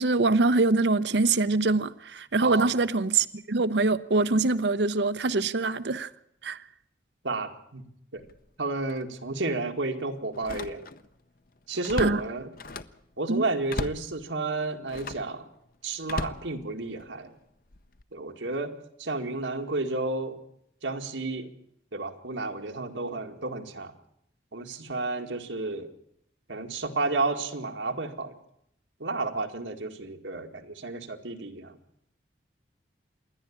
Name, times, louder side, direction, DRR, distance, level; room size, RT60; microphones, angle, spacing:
voice 1, 0.0-6.1 6.4-6.6 12.0-12.2 13.3-13.5, right 3 dB, 70° right, 0.7 m, -24 dB
voice 2, 2.4-2.7 7.2-7.8 8.1-8.2 8.6-10.8 11.7-12.5 13.2-15.5 15.8-17.3 18.1-20.4 20.8-21.5 21.9-23.9 24.5-25.9 26.5-28.4 29.0-31.8, right 3 dB, 90° right, 2.1 m, -31 dB
Slam, 8.2-8.4 8.9-9.0 10.3-11.1 11.5-13.0 13.7-14.1 14.9-15.3 16.0-17.1 17.7-18.0, left 3 dB, 50° left, 0.7 m, -36 dB
27.0 x 11.0 x 8.7 m
head